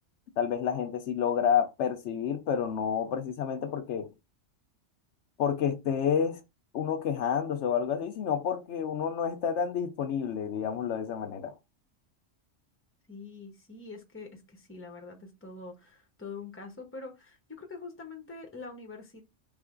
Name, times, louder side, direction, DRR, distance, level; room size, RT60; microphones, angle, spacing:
voice 1, 0.4-4.1 5.4-6.4 6.7-11.5, left 8 dB, 70° left, 0.9 m, -29 dB
voice 2, 13.1-19.2, left 4 dB, 10° left, 0.8 m, -44 dB
3.5 x 3.4 x 3.7 m
omnidirectional pair, 1.2 m